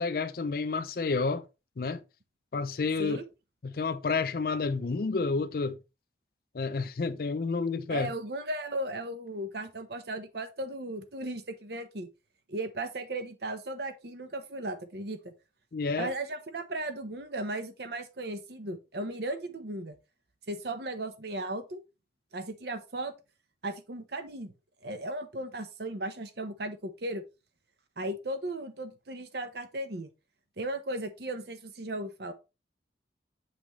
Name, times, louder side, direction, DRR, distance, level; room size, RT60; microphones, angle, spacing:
voice 1, 0.0-1.4 1.8-2.0 2.5-3.2 3.6-5.8 6.5-8.1 15.7-16.1, left 4 dB, 55° left, 0.4 m, -30 dB
voice 2, 7.9-12.1 12.5-15.3 16.0-20.0 20.5-21.8 22.3-23.1 23.6-24.5 24.8-27.2 28.0-30.1 30.6-32.3, right 1 dB, 65° right, 0.8 m, -36 dB
7.2 x 6.0 x 3.1 m
head